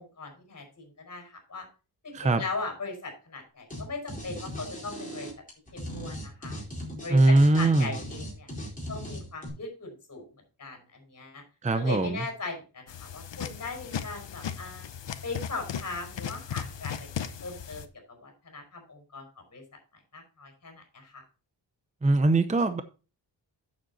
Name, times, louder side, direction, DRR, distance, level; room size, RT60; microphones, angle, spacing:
voice 1, 0.0-1.7 2.0-5.3 5.7-6.6 7.0-8.5 8.9-10.2 10.6-11.4 11.7-14.9 15.2-19.2 19.5-19.6 20.1-21.2, left 3 dB, 40° left, 5.0 m, -39 dB
sound 1, 3.7-3.8 4.1-9.5, equal, 20° left, 4.4 m, -38 dB
voice 2, 7.1-7.9 11.6-12.3 22.0-22.8, right 2 dB, 15° right, 0.6 m, -21 dB
sound 2, 12.9-17.9, left 8 dB, 80° left, 0.9 m, -37 dB
9.0 x 7.5 x 4.2 m
wide cardioid pair, 150°, 43 cm